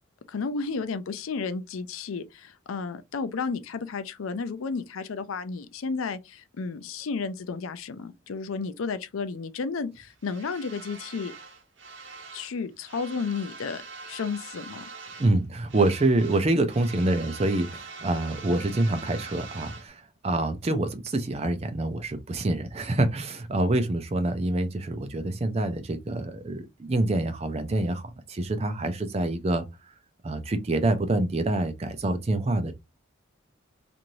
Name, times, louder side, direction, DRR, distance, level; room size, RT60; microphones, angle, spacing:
voice 1, 0.3-11.3 12.3-14.8, left 4 dB, 85° left, 0.5 m, -32 dB
sound 1, 10.2-12.5 12.8-15.4 15.7-19.9, right 4 dB, 65° right, 0.9 m, -43 dB
voice 2, 15.2-29.7 30.2-32.7, right 2 dB, 30° right, 0.4 m, -26 dB
3.0 x 2.6 x 2.6 m
head